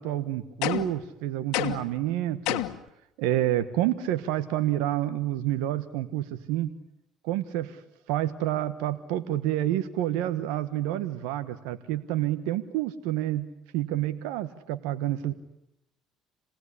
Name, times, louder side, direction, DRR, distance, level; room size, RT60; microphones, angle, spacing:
voice 1, 0.0-2.6 3.2-6.7 7.2-7.8 8.1-15.3, right 13 dB, 90° right, 10 dB, 1.2 m, -28 dB
sound 1, 0.6-1.1 1.5-2.0 2.5-2.9, left 16 dB, 85° left, 1.4 m, -29 dB
27.5 x 19.0 x 9.9 m, 0.85 s
supercardioid pair, 90°, 0 cm